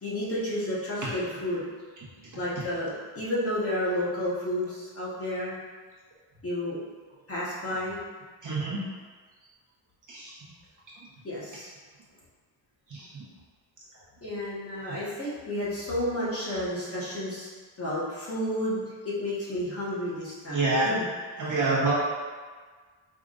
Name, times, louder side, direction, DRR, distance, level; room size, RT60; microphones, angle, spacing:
voice 1, 0.0-1.7 2.4-5.6 6.4-6.9 7.3-8.0 11.2-11.7 14.2-17.5 17.8-20.9 21.3-21.7, left 1 dB, 30° left, -9 dB, 1.5 m, -31 dB
voice 2, 8.4-8.8 10.1-10.3 12.9-13.1 20.5-20.9 21.4-21.9, right 3 dB, 40° right, -7 dB, 1.2 m, -26 dB
4.8 x 3.5 x 2.6 m, 1.5 s
cardioid pair, 100°, 48 cm